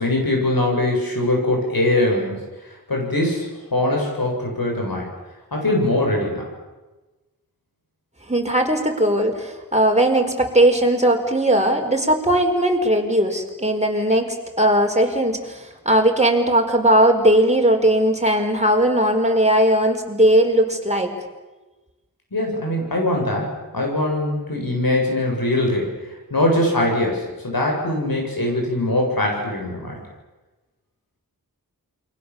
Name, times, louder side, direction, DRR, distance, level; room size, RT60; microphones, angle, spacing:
voice 1, 0.0-2.4 2.9-5.1 5.5-6.5 22.3-25.9 26.3-30.0, left 1 dB, 90° left, 0 dB, 7.6 m, -22 dB
voice 2, 8.3-21.1, right 1 dB, 20° right, 2 dB, 4.9 m, -18 dB
28.5 x 23.0 x 7.3 m, 1.2 s
wide cardioid pair, 45°, 34 cm